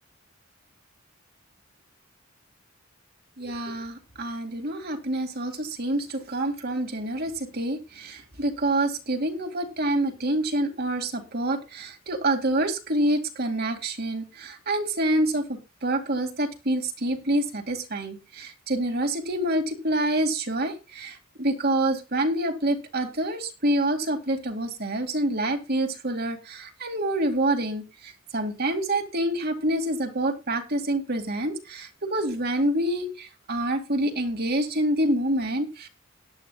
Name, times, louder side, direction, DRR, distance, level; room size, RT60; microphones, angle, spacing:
voice 1, 3.4-35.9, right 1 dB, 50° right, 4 dB, 2.2 m, -27 dB
18.0 x 11.0 x 2.3 m, 0.27 s
head